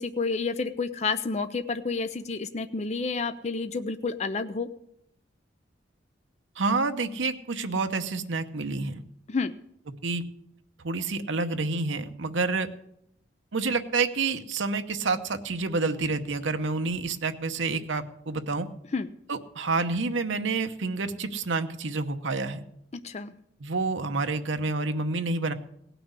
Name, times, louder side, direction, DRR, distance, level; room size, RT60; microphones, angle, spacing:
voice 1, 0.0-4.7 9.3-9.5 18.9-19.1 22.9-23.3, left 4 dB, 35° left, 10 dB, 0.5 m, -30 dB
voice 2, 6.6-9.0 10.0-10.2 10.8-12.7 13.5-18.7 19.3-22.6 23.6-25.5, right 3 dB, 75° right, 8 dB, 0.9 m, -28 dB
17.5 x 6.0 x 8.2 m, 0.76 s
head